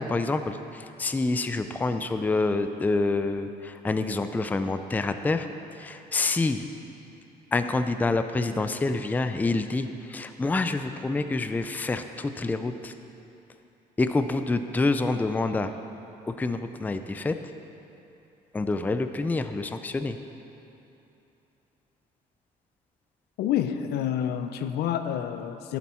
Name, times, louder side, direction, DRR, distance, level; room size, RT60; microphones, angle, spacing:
voice 1, 0.0-5.5 5.8-6.7 7.5-12.9 14.0-15.7 16.2-17.4 18.5-20.2, left 3 dB, 10° left, 9 dB, 0.4 m, -27 dB
voice 2, 23.4-25.8, left 9 dB, 75° left, 9 dB, 0.6 m, -28 dB
11.5 x 8.1 x 4.4 m, 2.9 s
cardioid pair, 110°, 17 cm